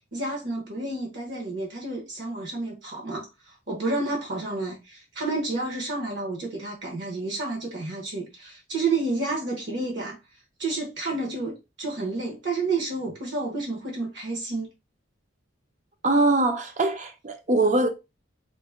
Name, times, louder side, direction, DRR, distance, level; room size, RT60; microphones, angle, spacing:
voice 1, 0.1-10.2 10.6-14.7, right 3 dB, 60° right, 1.1 m, -30 dB
voice 2, 16.0-17.9, right 2 dB, 35° right, 0.5 m, -22 dB
3.9 x 2.1 x 3.6 m
head